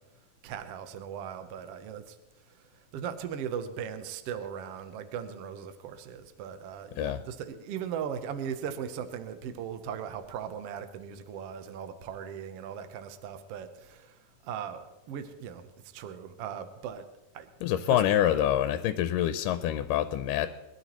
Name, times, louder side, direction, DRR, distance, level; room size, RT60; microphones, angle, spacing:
voice 1, 0.4-2.2 2.5-17.0 17.3-17.5 17.9-18.0, right 8 dB, 70° right, 8 dB, 1.5 m, -38 dB
voice 2, 17.6-20.5, left 11 dB, 85° left, 10 dB, 2.2 m, -26 dB
21.5 x 12.5 x 3.1 m, 1.1 s
omnidirectional pair, 3.9 m